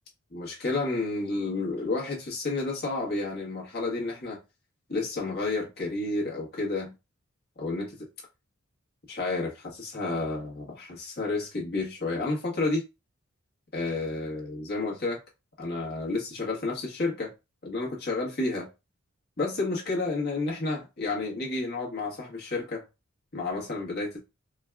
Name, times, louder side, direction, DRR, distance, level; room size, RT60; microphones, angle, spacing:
voice 1, 0.3-4.4 4.9-6.9 7.6-8.0 9.1-12.8 13.7-15.2 15.6-17.3 17.6-18.7 19.4-22.8 23.3-24.2, left 3 dB, 50° left, 1.3 m, -30 dB
4.5 x 2.3 x 2.3 m
head